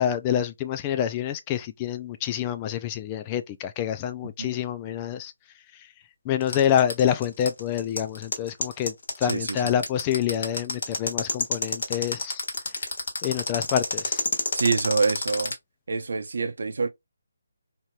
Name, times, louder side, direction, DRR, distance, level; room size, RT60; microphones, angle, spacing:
voice 1, 0.0-5.3 6.3-12.4 13.2-14.2, left 10 dB, 20° left, 0.3 m, -27 dB
sound 1, 6.4-15.5, left 3 dB, 55° left, 1.4 m, -28 dB
voice 2, 9.2-9.7 14.5-15.5 15.9-16.9, right 4 dB, 65° right, 0.7 m, -26 dB
3.0 x 2.8 x 2.3 m
figure-of-eight pair, 160°, 0 cm